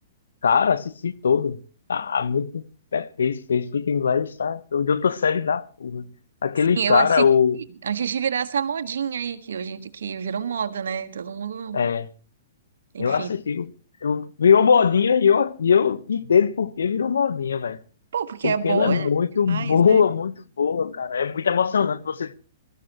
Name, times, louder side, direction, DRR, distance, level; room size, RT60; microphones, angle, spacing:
voice 1, 0.4-1.6 1.9-2.6 2.9-6.1 6.4-7.6 11.7-12.1 13.0-13.7 14.0-17.8 18.4-22.4, left 6 dB, 85° left, 1.1 m, -21 dB
voice 2, 6.7-7.2 7.6-11.8 12.9-13.3 18.1-19.1 19.4-20.0, right 7 dB, 75° right, 1.6 m, -28 dB
22.0 x 14.0 x 3.0 m
hypercardioid pair, 130°, 0 cm